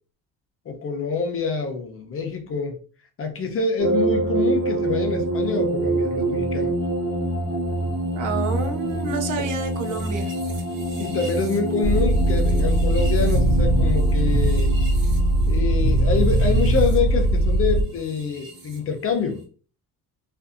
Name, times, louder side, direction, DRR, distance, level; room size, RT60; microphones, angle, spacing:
voice 1, 0.7-2.8 3.2-6.8 10.9-14.7 15.5-19.4, left 5 dB, 35° left, 4 dB, 0.7 m, -26 dB
sound 1, 3.8-18.8, right 1 dB, 35° right, 1.0 m, -27 dB
voice 2, 8.1-10.3, right 4 dB, 55° right, 5 dB, 0.6 m, -29 dB
sound 2, 11.8-17.8, right 1 dB, 80° right, 0.9 m, -20 dB
2.5 x 2.5 x 2.5 m, 0.40 s
cardioid pair, 105°, 37 cm